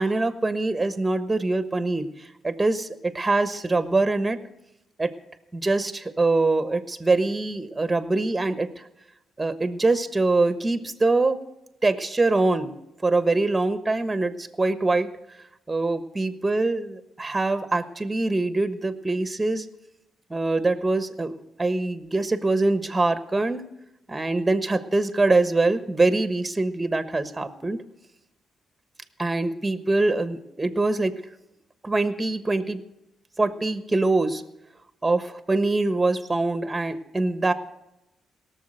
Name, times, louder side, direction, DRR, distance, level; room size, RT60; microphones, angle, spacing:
voice 1, 0.0-4.4 5.0-5.1 5.5-8.8 9.4-11.4 11.8-12.7 13.0-15.1 15.7-19.7 20.3-23.6 24.1-27.8 29.2-31.2 31.8-32.8 33.4-34.4 35.0-37.5, right 2 dB, 20° right, 10 dB, 1.3 m, -24 dB
17.5 x 6.9 x 7.8 m, 0.90 s
cardioid pair, 70°, 0 cm